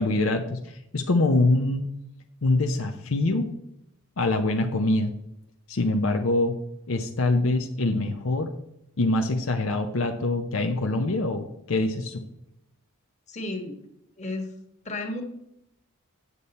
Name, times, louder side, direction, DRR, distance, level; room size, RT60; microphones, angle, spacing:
voice 1, 0.0-1.9 2.4-3.5 4.2-5.1 5.7-6.5 6.9-8.5 9.0-12.3, left 2 dB, 70° left, 5 dB, 0.7 m, -24 dB
voice 2, 13.3-13.8 14.2-14.5 14.8-15.2, left 2 dB, 35° left, 3 dB, 1.5 m, -32 dB
8.4 x 6.9 x 4.2 m, 0.82 s
head